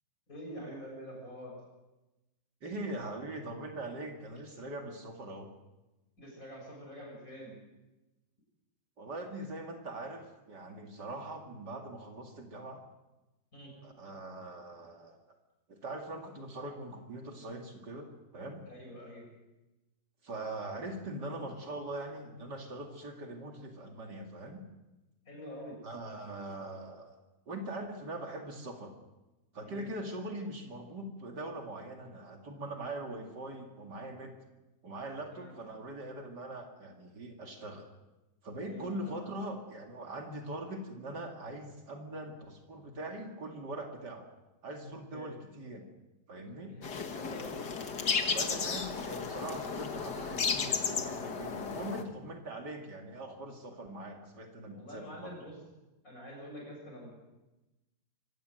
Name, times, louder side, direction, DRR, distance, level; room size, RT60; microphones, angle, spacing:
voice 1, 0.3-1.5 6.2-7.6 13.5-13.7 18.7-19.3 25.3-25.8 29.6-29.8 35.3-35.5 38.6-39.2 45.1-45.3 46.7-47.6 54.7-55.6 56.0-57.1, equal, 50° left, -1 dB, 7.5 m, -46 dB
voice 2, 2.6-5.5 9.0-12.8 13.8-15.2 15.7-18.6 20.2-24.7 25.8-27.1 27.5-28.9 29.5-34.3 34.8-37.9 38.4-44.3 44.6-45.9 46.3-46.7 48.3-55.3, right 1 dB, 70° right, 2 dB, 3.0 m, -42 dB
sound 1, 46.8-52.0, left 5 dB, 70° left, 2.1 m, -34 dB
24.5 x 17.5 x 7.9 m, 1.0 s
omnidirectional pair, 1.9 m